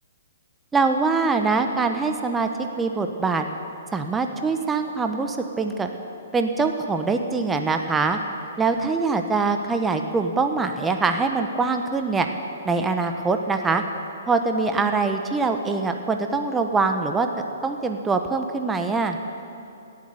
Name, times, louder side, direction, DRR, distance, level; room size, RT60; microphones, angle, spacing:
voice 1, 0.7-2.5 2.8-3.4 3.9-5.9 6.3-8.2 8.6-12.3 12.6-13.8 14.3-19.2, right 4 dB, 10° right, 5 dB, 0.9 m, -23 dB
17.0 x 7.6 x 9.2 m, 2.6 s
hypercardioid pair, 130°, 0 cm